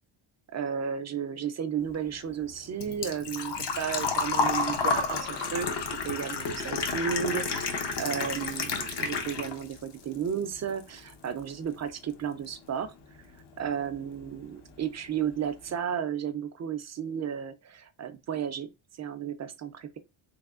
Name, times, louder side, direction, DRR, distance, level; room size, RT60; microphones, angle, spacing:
voice 1, 0.5-12.9 13.6-18.7 19.0-20.0, right 8 dB, 35° right, 0.4 m, -33 dB
Engine / Trickle dribble / Fill (with liquid), 1.8-9.8 10.1-11.1 11.4-11.5 13.4-13.5 13.7-14.0 14.4-14.5 14.7-14.8, left 4 dB, 55° left, 0.9 m, -30 dB
3.4 x 3.3 x 2.4 m
cardioid pair, 100°, 49 cm